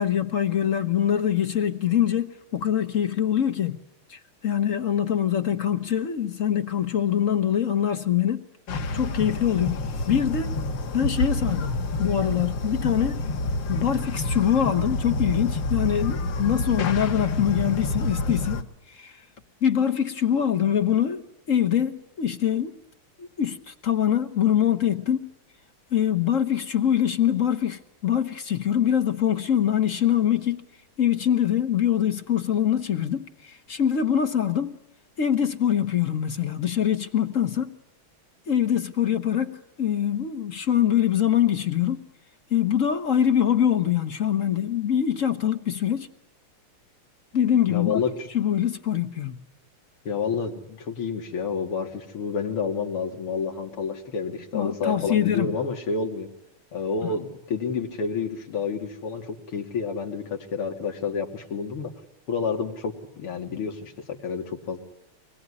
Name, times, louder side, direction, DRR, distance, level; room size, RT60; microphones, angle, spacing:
voice 1, 0.0-3.8 4.1-8.4 8.9-9.8 10.1-10.5 10.9-13.2 13.7-18.7 18.9-19.1 19.6-22.7 23.2-25.3 25.9-30.7 31.0-34.8 35.2-37.8 38.5-42.1 42.5-46.1 47.3-48.0 48.3-49.4 54.5-55.5, left 9 dB, 45° left, 1.2 m, -24 dB
sound 1, 8.7-18.6, left 2 dB, 60° left, 1.8 m, -28 dB
voice 2, 47.7-48.3 50.0-56.3 56.7-61.9 62.3-64.8, left 5 dB, 90° left, 3.3 m, -29 dB
25.0 x 21.0 x 9.8 m
omnidirectional pair, 2.4 m